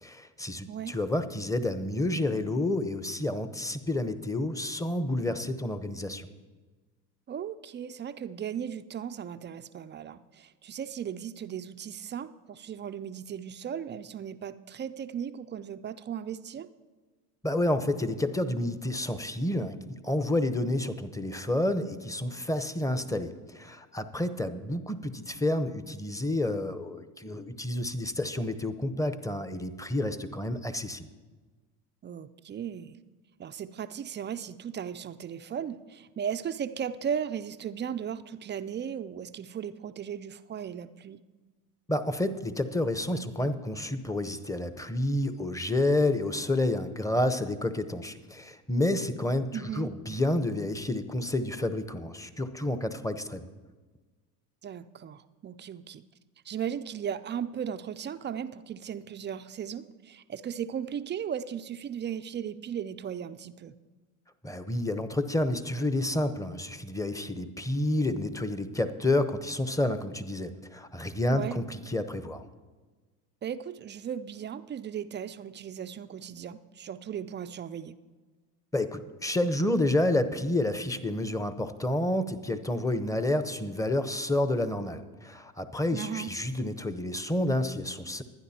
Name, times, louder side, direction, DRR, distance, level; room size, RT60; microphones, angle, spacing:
voice 1, 0.0-6.3 17.4-31.1 41.9-49.5 49.8-53.4 64.4-72.4 78.7-88.2, left 1 dB, 5° left, 11 dB, 0.8 m, -29 dB
voice 2, 7.3-16.7 32.0-33.0 33.4-41.2 49.5-49.9 54.6-56.0 56.5-63.7 71.3-71.6 73.4-78.0 85.9-86.3, right 8 dB, 25° right, 11 dB, 0.4 m, -36 dB
23.0 x 9.7 x 2.8 m, 1.4 s
hypercardioid pair, 65°, 47 cm